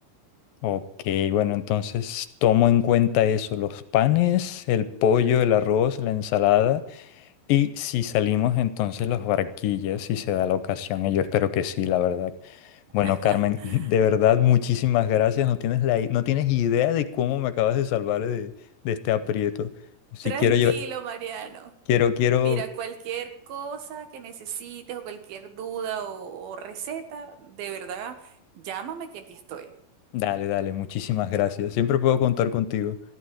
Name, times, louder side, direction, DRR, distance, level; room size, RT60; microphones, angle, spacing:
voice 1, 0.6-7.1 7.5-12.6 12.9-18.5 18.9-19.7 20.1-20.7 21.9-22.6 30.1-33.0, left 10 dB, 75° left, 13 dB, 2.4 m, -23 dB
voice 2, 13.0-13.9 20.2-21.7 22.4-29.7, right 8 dB, 75° right, 8 dB, 3.4 m, -35 dB
14.0 x 11.5 x 7.7 m, 0.71 s
omnidirectional pair, 4.2 m